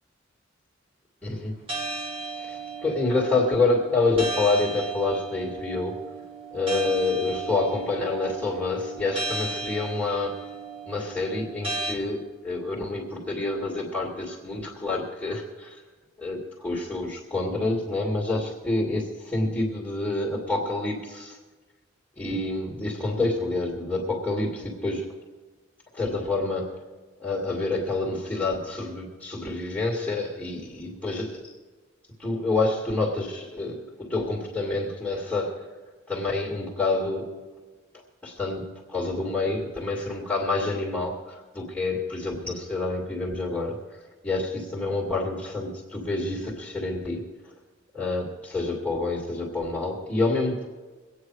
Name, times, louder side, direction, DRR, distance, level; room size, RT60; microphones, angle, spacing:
voice 1, 1.2-1.5 2.4-6.0 6.5-10.5 10.9-15.8 16.2-21.4 22.2-25.1 25.9-26.7 27.2-31.4 32.2-35.7 36.1-37.3 38.2-43.8 44.2-47.5 47.9-50.6, left 3 dB, 5° left, -5 dB, 2.3 m, -28 dB
sound 1, 1.7-11.9, right 3 dB, 30° right, 1.9 m, -35 dB
23.5 x 9.3 x 4.8 m, 1.3 s
head